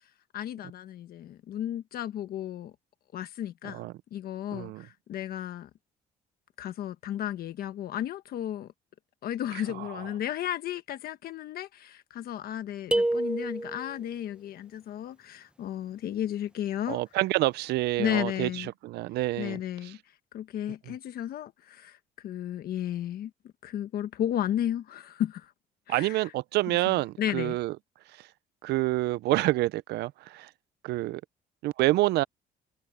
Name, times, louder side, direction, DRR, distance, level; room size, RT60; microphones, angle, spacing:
voice 1, 0.3-2.7 3.1-3.8 4.1-5.7 6.6-8.7 9.2-17.0 18.0-18.7 19.4-20.0 20.3-23.3 23.6-25.5 25.9-26.3 26.7-27.6, left 11 dB, 65° left, 1.3 m, -34 dB
voice 2, 4.5-4.8 16.9-18.5 18.8-19.6 25.9-27.7 28.6-30.5 30.8-31.2 31.6-32.2, right 18 dB, 75° right, 0.6 m, -27 dB
sound 1, 12.9-14.0, right 1 dB, 5° right, 1.1 m, -28 dB
cardioid pair, 110°, 17 cm